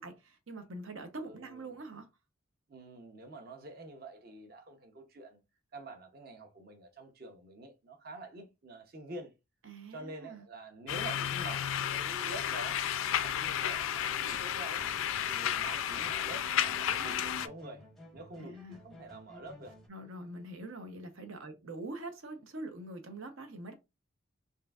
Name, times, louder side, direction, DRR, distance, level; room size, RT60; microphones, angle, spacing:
voice 1, 0.0-2.1 9.6-10.4 18.4-18.8 19.9-23.7, right 2 dB, 80° right, 0.8 m, -44 dB
voice 2, 1.2-1.6 2.7-5.4 5.7-9.3 9.9-14.9 15.3-17.8 18.1-19.8, right 2 dB, 45° right, 0.7 m, -47 dB
sound 1, 10.9-17.5, left 9 dB, 80° left, 0.4 m, -32 dB
sound 2, 14.5-19.9, equal, ahead, 0.6 m, -55 dB
5.5 x 2.6 x 2.3 m
head